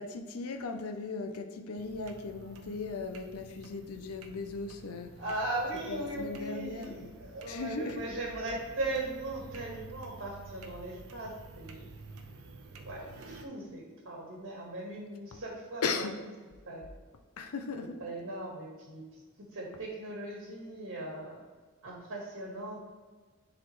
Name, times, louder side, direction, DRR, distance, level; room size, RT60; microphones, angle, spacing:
voice 1, 0.0-5.2 5.9-7.2 7.5-8.0 15.8-16.2 17.4-18.0, left 4 dB, 75° left, 5 dB, 0.6 m, -37 dB
sound 1, 1.8-13.4, right 3 dB, 75° right, 0.8 m, -50 dB
voice 2, 5.2-11.9 12.8-16.1 16.7-16.9 17.8-19.2 19.5-21.4 21.8-22.8, right 2 dB, 60° right, -2 dB, 1.5 m, -38 dB
10.5 x 4.1 x 3.1 m, 1.4 s
head